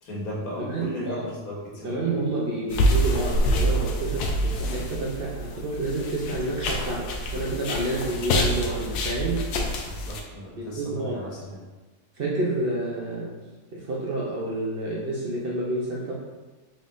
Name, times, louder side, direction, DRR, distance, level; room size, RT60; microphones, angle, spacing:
voice 1, 0.0-2.1 9.8-11.6, left 1 dB, 60° left, -5 dB, 1.5 m, -36 dB
voice 2, 0.7-1.3 1.8-7.1 7.3-9.5 10.6-11.2 12.2-13.3 13.7-16.1, right 2 dB, 65° right, -4 dB, 0.5 m, -29 dB
sound 1, 2.7-10.2, equal, 75° left, 1.1 m, -26 dB
4.2 x 3.7 x 2.5 m, 1.3 s
omnidirectional pair, 1.7 m